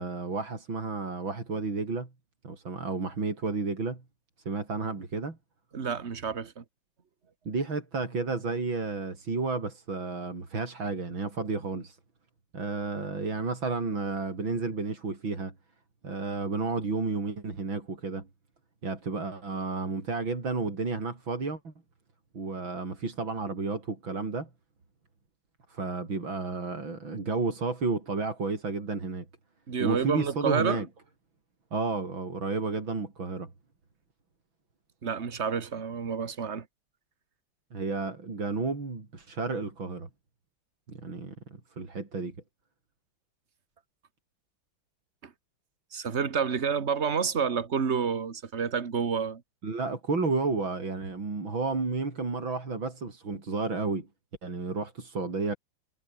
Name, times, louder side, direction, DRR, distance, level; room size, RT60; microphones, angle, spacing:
voice 1, 0.0-2.1 2.4-4.0 4.5-5.4 7.5-12.0 12.5-15.5 16.0-18.3 18.8-21.7 22.3-24.5 25.7-29.3 29.8-30.9 31.7-33.5 37.7-40.1 40.9-42.4 49.6-54.1 54.4-55.6, right 3 dB, 85° right, 5.4 m, -32 dB
voice 2, 5.7-6.6 29.7-30.8 35.0-36.7 45.2-45.3 45.9-49.4, right 6 dB, 35° right, 1.9 m, -29 dB
omnidirectional pair, 2.1 m